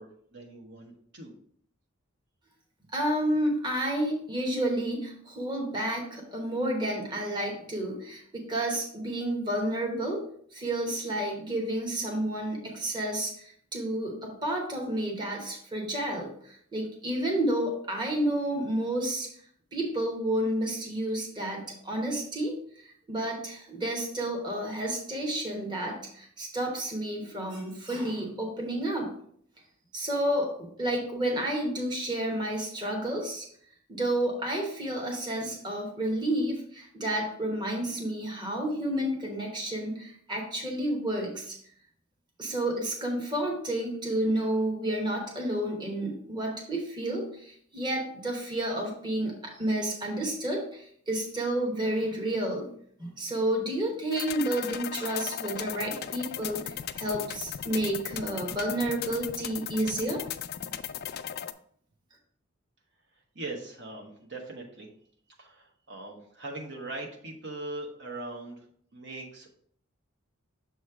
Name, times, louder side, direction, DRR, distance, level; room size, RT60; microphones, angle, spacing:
voice 1, 0.0-1.3 63.3-64.9 65.4-68.7 68.9-69.5, right 2 dB, 60° right, 0 dB, 1.0 m, -40 dB
voice 2, 2.9-10.2 10.5-19.3 19.7-22.5 22.8-29.1 29.9-33.4 33.9-41.6 42.4-52.7 53.0-60.2, right 1 dB, 20° right, 0 dB, 1.1 m, -30 dB
sound 1, 54.1-61.5, left 10 dB, 50° left, 0.3 m, -37 dB
6.8 x 3.1 x 4.7 m, 0.62 s
head